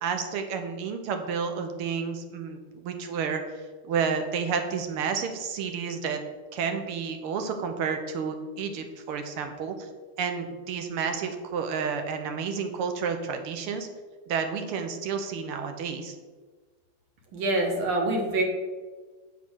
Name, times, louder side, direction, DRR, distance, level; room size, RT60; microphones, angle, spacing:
voice 1, 0.0-3.4 3.8-6.2 6.5-9.9 10.2-13.9 14.3-16.2, right 6 dB, 90° right, 6 dB, 1.7 m, -30 dB
voice 2, 17.3-18.4, right 2 dB, 70° right, 1 dB, 2.0 m, -25 dB
7.3 x 4.3 x 6.1 m, 1.4 s
omnidirectional pair, 2.4 m